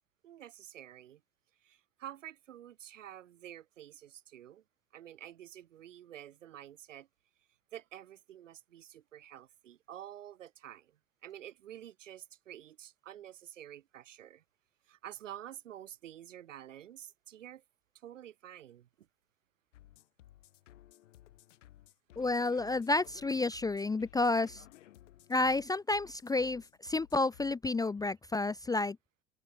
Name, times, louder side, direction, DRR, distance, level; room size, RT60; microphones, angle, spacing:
voice 1, 0.2-1.2 1.6-4.6 4.9-7.1 7.7-14.4 14.9-17.6 17.9-18.9, right 11 dB, 70° right, 7.2 m, -49 dB
sound 1, 19.7-27.5, left 13 dB, 70° left, 2.3 m, -57 dB
voice 2, 22.2-24.6 25.3-29.0, left 2 dB, 10° left, 0.6 m, -30 dB
open air
figure-of-eight pair, 75°, 38 cm